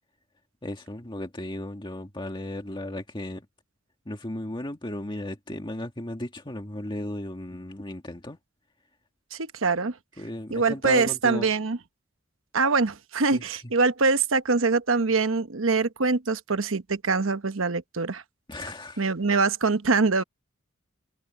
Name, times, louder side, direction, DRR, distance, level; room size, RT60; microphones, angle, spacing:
voice 1, 0.6-3.5 4.1-8.4 10.2-11.5 13.3-13.4 18.5-19.1, left 1 dB, 25° left, 2.0 m, -35 dB
voice 2, 9.3-10.0 10.5-11.8 12.5-18.2 19.0-20.2, right 4 dB, 75° right, 1.0 m, -24 dB
head